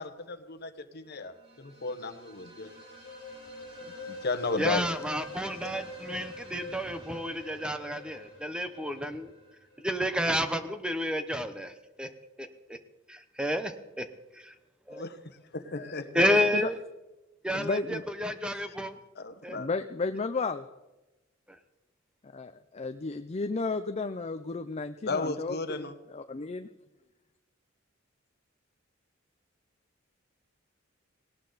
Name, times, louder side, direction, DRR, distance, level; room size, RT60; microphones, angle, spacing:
voice 1, 0.0-2.7 4.1-4.9 14.9-15.2 15.5-16.1 19.2-19.7 25.0-25.9, left 3 dB, 55° left, 10 dB, 1.3 m, -34 dB
sound 1, 1.3-10.1, left 2 dB, 30° right, 5.3 m, -45 dB
voice 2, 4.6-9.3 9.8-12.1 12.4-12.8 13.1-14.1 14.3-14.5 14.9-15.1 16.1-16.8 17.4-19.0 19.4-19.7 21.5-21.6, equal, 5° right, 9 dB, 0.8 m, -31 dB
voice 3, 15.8-16.6 17.5-18.1 19.5-20.6 22.3-26.7, left 3 dB, 30° left, 9 dB, 0.5 m, -33 dB
18.5 x 18.0 x 4.0 m, 1.1 s
head